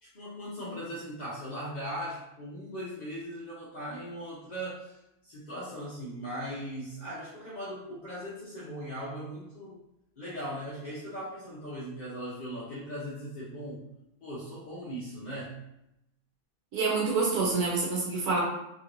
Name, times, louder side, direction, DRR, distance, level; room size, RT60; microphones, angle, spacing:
voice 1, 0.0-9.8 10.2-13.9 14.2-15.6, equal, 45° left, -8 dB, 0.6 m, -39 dB
voice 2, 16.7-18.4, right 4 dB, 85° right, -4 dB, 1.3 m, -27 dB
3.0 x 3.0 x 2.5 m, 0.85 s
omnidirectional pair, 1.5 m